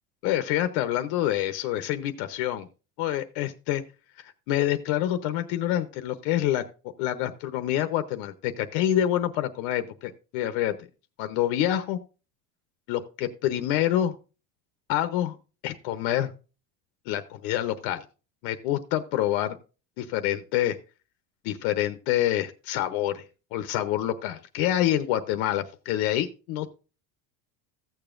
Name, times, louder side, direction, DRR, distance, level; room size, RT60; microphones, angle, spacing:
voice 1, 0.2-2.7 3.0-3.8 4.2-6.6 7.0-10.7 11.2-12.0 12.9-14.1 14.9-15.4 15.6-16.3 17.1-18.0 18.4-19.6 20.0-20.8 21.4-23.2 23.5-26.7, left 12 dB, 65° left, 10 dB, 0.9 m, -27 dB
15.5 x 7.0 x 2.5 m, 0.33 s
cardioid pair, 160°, 40 cm